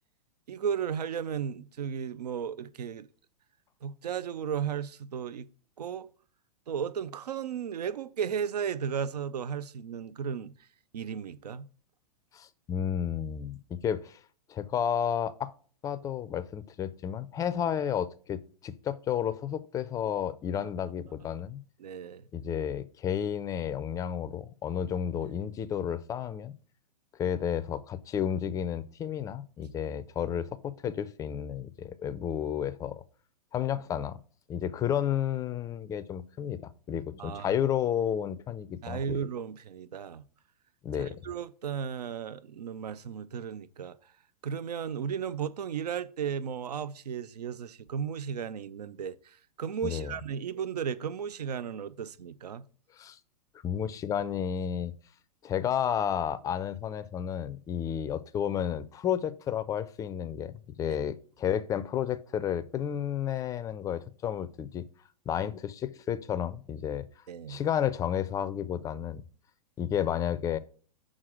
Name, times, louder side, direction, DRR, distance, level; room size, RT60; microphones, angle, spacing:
voice 1, 0.5-3.1 3.8-5.5 5.8-6.1 6.7-10.5 10.9-11.7 20.5-20.7 21.8-22.2 37.2-37.5 38.8-40.2 41.0-44.0 44.4-52.6 67.3-67.6, right 7 dB, 75° right, 0.5 m, -35 dB
voice 2, 12.3-14.2 14.5-15.5 15.8-21.6 22.3-26.5 27.2-33.0 33.5-34.2 34.5-36.6 36.9-39.2 40.8-41.2 49.8-50.1 53.0-53.2 53.6-54.9 55.4-64.8 65.3-67.0 67.5-69.2 69.8-70.6, left 9 dB, 15° left, 0.4 m, -31 dB
6.5 x 3.7 x 6.1 m
hypercardioid pair, 110°, 20 cm